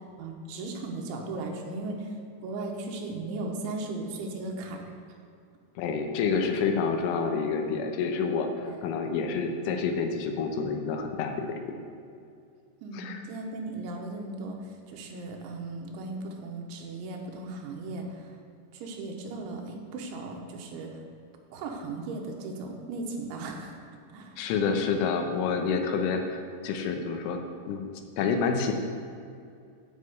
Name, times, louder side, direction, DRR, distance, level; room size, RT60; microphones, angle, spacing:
voice 1, 0.2-2.1 2.4-4.8 8.7-8.8 12.8-18.4 18.7-21.0 21.5-23.8 24.1-24.4, right 2 dB, 85° right, 2 dB, 3.4 m, -37 dB
voice 2, 5.8-11.8 12.9-13.2 24.4-27.4 27.7-27.9 28.2-28.7, left 5 dB, 90° left, 5 dB, 3.4 m, -28 dB
9.7 x 5.3 x 8.0 m, 2.4 s
omnidirectional pair, 5.4 m